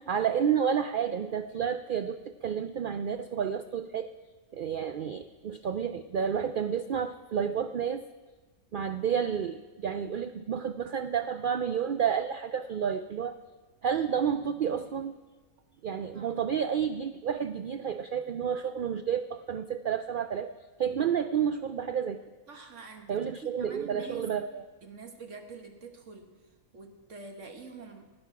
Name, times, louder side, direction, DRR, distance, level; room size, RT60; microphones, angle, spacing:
voice 1, 0.0-4.1 4.5-8.0 8.7-13.4 13.8-15.2 15.8-20.5 20.8-22.2 23.1-24.6, right 8 dB, 80° right, 10 dB, 0.4 m, -30 dB
voice 2, 15.8-16.4 22.5-24.3 24.8-26.3 26.7-28.0, right 4 dB, 60° right, 4 dB, 1.6 m, -46 dB
16.0 x 9.6 x 5.9 m, 1.3 s
omnidirectional pair, 1.4 m